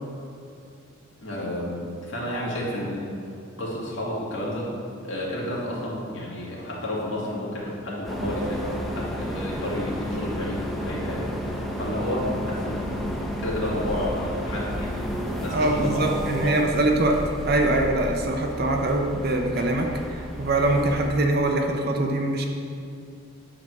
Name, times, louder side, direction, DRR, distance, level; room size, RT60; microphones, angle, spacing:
voice 1, 1.2-3.0 3.6-4.7 5.0-13.1 13.4-16.6, left 1 dB, 65° left, -5 dB, 2.2 m, -31 dB
sound 1, 8.0-21.1, equal, ahead, 0.8 m, -32 dB
voice 2, 15.5-22.4, right 2 dB, 50° right, 2 dB, 0.7 m, -23 dB
9.0 x 4.0 x 6.5 m, 2.5 s
head